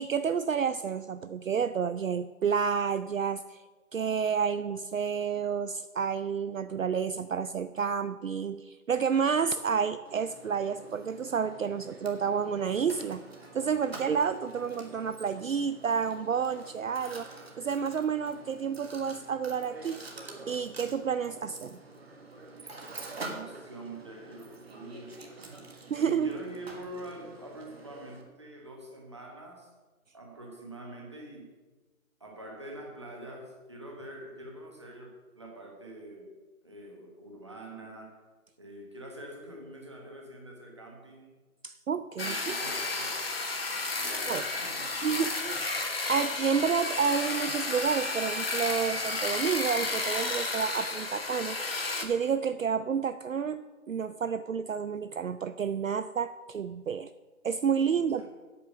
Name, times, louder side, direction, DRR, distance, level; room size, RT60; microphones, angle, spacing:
voice 1, 0.0-3.6 3.9-13.2 13.5-17.3 17.6-20.0 20.5-21.8 25.9-26.3 41.6-42.5 44.3-44.4 45.0-57.1 57.4-58.3, right 6 dB, 65° right, 12 dB, 0.5 m, -30 dB
Mechanisms, 10.0-28.2, right 3 dB, 45° right, 1.6 m, -47 dB
voice 2, 23.2-29.7 30.1-31.5 32.2-38.3 38.6-41.4 42.2-43.3 44.0-45.0 57.9-58.3, right 1 dB, 20° right, 0 dB, 1.2 m, -45 dB
sound 1, 42.2-52.0, left 3 dB, 40° left, 1.2 m, -32 dB
8.5 x 8.2 x 6.5 m, 1.2 s
figure-of-eight pair, 170°, 43 cm